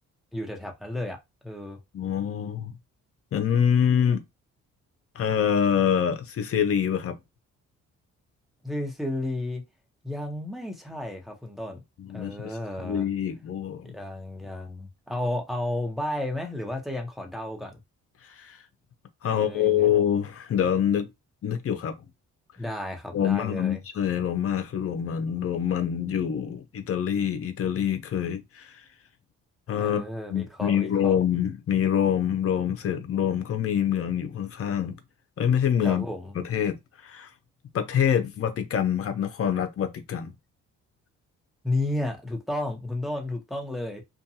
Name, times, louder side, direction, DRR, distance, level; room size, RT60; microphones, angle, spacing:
voice 1, 0.3-1.2 1.4-1.8 8.6-9.6 10.0-11.8 12.1-13.1 13.8-17.8 19.3-19.9 22.6-23.8 29.8-31.2 35.8-36.3 41.6-44.0, left 1 dB, ahead, 0.9 m, -32 dB
voice 2, 1.9-2.7 3.3-4.2 5.1-7.2 12.1-12.5 12.8-13.9 18.3-18.6 19.2-21.1 21.4-21.9 23.1-28.8 29.7-30.0 30.3-35.0 35.4-36.0 36.4-37.3 37.7-40.3, left 9 dB, 50° left, 0.7 m, -25 dB
2.6 x 2.3 x 2.8 m
cardioid pair, 90°, 30 cm